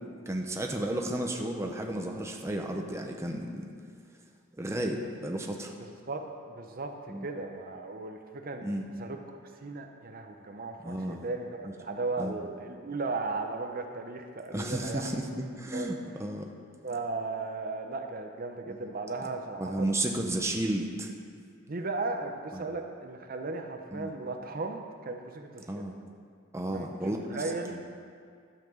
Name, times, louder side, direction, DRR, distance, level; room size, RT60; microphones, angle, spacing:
voice 1, 0.3-3.7 4.6-5.7 7.1-7.3 8.6-8.9 10.8-11.3 11.6-11.7 12.2-12.3 14.5-16.5 19.6-21.1 22.5-22.7 23.9-24.1 25.7-25.9 26.5-27.2 27.7-27.8, right 1 dB, 15° right, 2 dB, 0.7 m, -33 dB
voice 2, 5.8-8.7 9.0-15.2 15.7-15.9 16.8-19.9 21.7-25.9 26.7-27.8, right 3 dB, 45° right, 5 dB, 0.8 m, -36 dB
12.0 x 5.8 x 7.1 m, 2.1 s
head